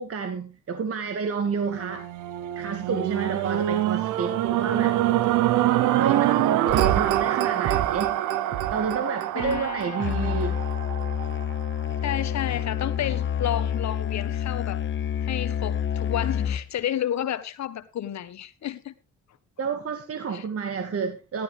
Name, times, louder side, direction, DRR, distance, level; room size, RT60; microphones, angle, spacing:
voice 1, 0.0-2.1 2.6-5.0 5.9-8.2 8.7-10.6 19.6-21.4, right 5 dB, 50° right, 2.0 m, -30 dB
sound 1, 1.6-11.9 12.5-12.6, right 13 dB, 90° right, 0.9 m, -25 dB
voice 2, 9.3-10.2 12.0-14.8 15.2-18.9 20.3-20.5, left 11 dB, 65° left, 1.4 m, -31 dB
Musical instrument, 10.0-16.8, left 9 dB, 40° left, 0.7 m, -28 dB
14.5 x 12.5 x 3.4 m
cardioid pair, 90°, 30 cm